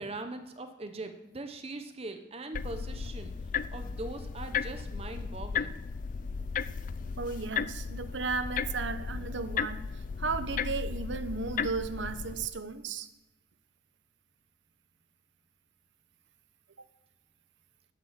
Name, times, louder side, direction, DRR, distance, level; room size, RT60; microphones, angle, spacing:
voice 1, 0.0-5.8, right 2 dB, 35° right, 7 dB, 0.9 m, -41 dB
sound 1, 2.5-12.5, left 6 dB, 45° left, 0.4 m, -35 dB
voice 2, 7.2-13.1 16.8-16.9, right 4 dB, 85° right, 12 dB, 0.9 m, -35 dB
12.0 x 6.9 x 7.4 m, 0.97 s
head